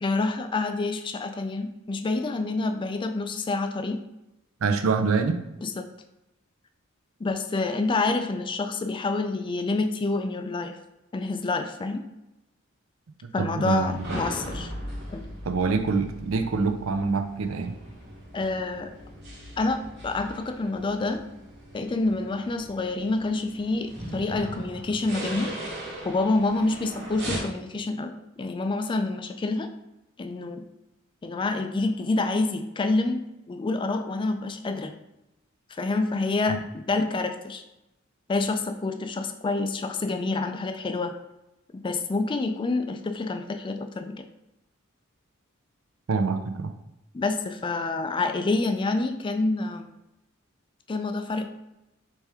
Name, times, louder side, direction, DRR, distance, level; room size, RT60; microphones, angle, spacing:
voice 1, 0.0-4.0 5.6-5.8 7.2-10.8 11.1-12.0 13.3-14.7 15.1-15.3 18.3-18.9 19.6-19.8 20.0-21.2 21.7-25.5 26.0-29.7 30.2-30.6 31.2-33.2 33.5-34.9 35.7-37.6 38.3-41.1 41.7-44.2 47.1-49.9 50.9-51.5, left 3 dB, 25° left, 7 dB, 0.3 m, -27 dB
voice 2, 4.6-5.4 13.2-14.0 15.4-17.7 36.5-36.6 46.1-46.7, right 4 dB, 75° right, 7 dB, 0.5 m, -25 dB
sound 1, 13.8-27.4, right 1 dB, 55° right, 1.2 m, -39 dB
4.3 x 3.4 x 3.4 m, 0.93 s
head